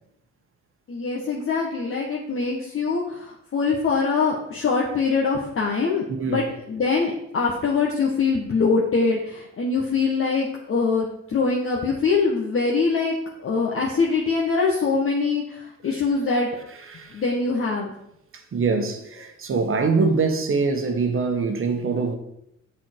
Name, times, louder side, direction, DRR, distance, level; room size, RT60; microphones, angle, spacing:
voice 1, 0.9-16.5 17.1-17.9, left 4 dB, 45° left, 1.4 m, -23 dB
voice 2, 16.9-17.2 18.5-22.2, right 4 dB, 45° right, 1.3 m, -23 dB
7.6 x 6.5 x 4.6 m
cardioid pair, 90°, 30 cm